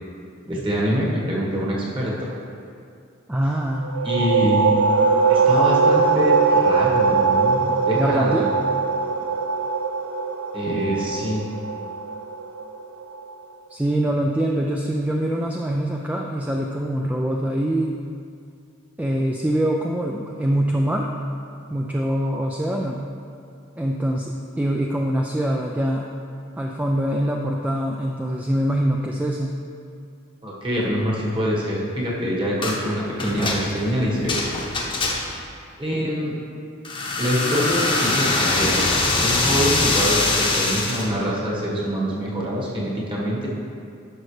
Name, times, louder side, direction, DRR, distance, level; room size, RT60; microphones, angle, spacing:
voice 1, 0.4-2.3 4.0-4.8 5.3-8.5 10.5-11.4 30.4-34.4 35.8-36.3 37.2-38.9 39.2-43.5, equal, 25° right, -4 dB, 1.4 m, -25 dB
voice 2, 3.3-4.0 7.9-8.5 13.7-18.0 19.0-21.1 21.7-23.0 23.8-26.1 26.6-29.5, right 1 dB, 5° right, 0 dB, 0.3 m, -24 dB
sound 1, 3.8-13.2, right 4 dB, 90° right, 0.5 m, -21 dB
sound 2, 32.6-32.8 33.2-35.5 36.8-41.1, left 2 dB, 25° left, 0.8 m, -23 dB
10.5 x 6.3 x 3.2 m, 2.4 s
head